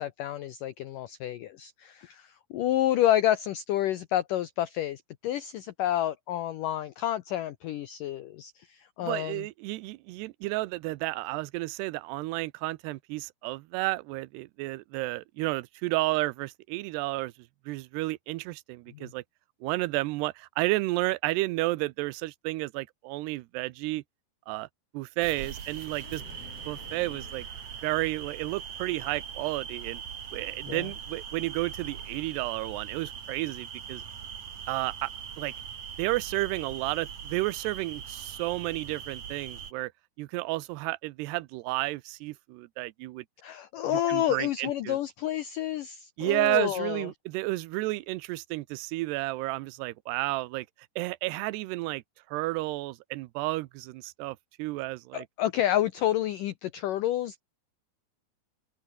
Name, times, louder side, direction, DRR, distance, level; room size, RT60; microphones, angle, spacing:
voice 1, 0.0-9.4 18.9-19.1 30.7-30.9 43.4-47.1 55.1-57.4, left 12 dB, 80° left, 1.9 m, -29 dB
voice 2, 9.0-17.3 17.7-19.2 19.6-24.0 24.5-24.7 24.9-26.2 26.7-27.5 27.8-30.0 30.3-34.0 34.7-35.1 35.4-35.5 36.0-39.9 40.2-43.2 43.9-45.0 46.2-50.7 51.0-52.0 52.3-55.3, right 20 dB, 80° right, 2.7 m, -32 dB
sound 1, 25.2-39.7, right 7 dB, 45° right, 3.1 m, -41 dB
sound 2, 26.0-27.5, left 7 dB, 40° left, 2.6 m, -51 dB
open air
omnidirectional pair, 5.1 m